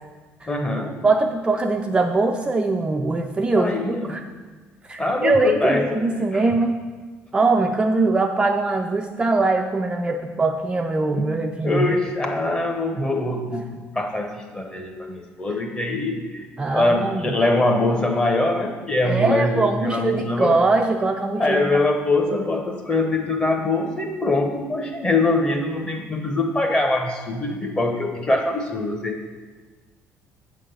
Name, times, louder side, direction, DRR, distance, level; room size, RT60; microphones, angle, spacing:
voice 1, 0.5-0.9 3.5-4.2 5.0-5.8 6.3-6.4 11.2-11.3 11.6-13.7 13.9-16.5 16.7-20.5 21.4-29.2, left 2 dB, 20° left, 3 dB, 1.0 m, -23 dB
voice 2, 1.0-4.2 4.9-6.8 7.3-12.0 13.0-13.1 15.5-15.6 16.6-17.3 19.0-21.7, right 3 dB, 20° right, 3 dB, 0.4 m, -22 dB
8.4 x 3.8 x 6.8 m, 1.4 s
cardioid pair, 125°, 5 cm